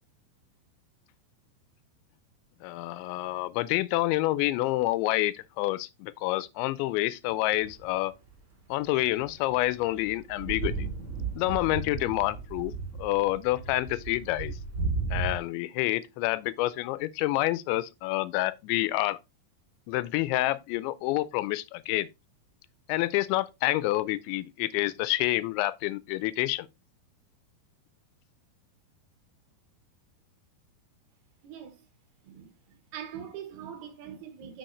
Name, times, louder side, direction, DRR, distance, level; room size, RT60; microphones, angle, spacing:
voice 1, 2.6-8.1 8.7-10.9 11.4-12.7 13.0-14.6 15.1-19.2 19.9-22.1 22.9-26.7, left 17 dB, 90° left, 2.9 m, -28 dB
sound 1, 7.5-8.0 8.9-15.4, right 4 dB, 30° right, 4.6 m, -35 dB
voice 2, 31.4-31.8 32.2-34.6, right 9 dB, 70° right, 3.0 m, -43 dB
7.7 x 6.5 x 3.1 m
omnidirectional pair, 5.1 m